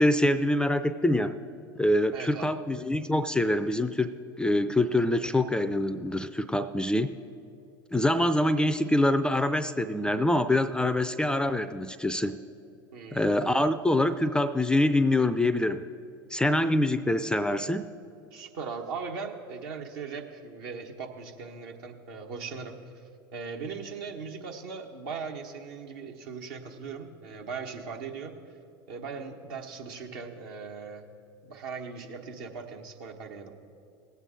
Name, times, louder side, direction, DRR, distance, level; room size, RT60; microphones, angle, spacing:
voice 1, 0.0-1.4 1.8-7.1 7.9-12.4 13.1-15.9 16.3-17.8, left 1 dB, 5° left, 13 dB, 0.4 m, -25 dB
voice 2, 2.1-2.6 12.9-13.3 18.3-22.8 23.3-28.4 28.9-31.0 31.4-33.5, right 5 dB, 65° right, 3 dB, 1.2 m, -39 dB
18.5 x 8.1 x 3.8 m, 2.6 s
hypercardioid pair, 80°, 13 cm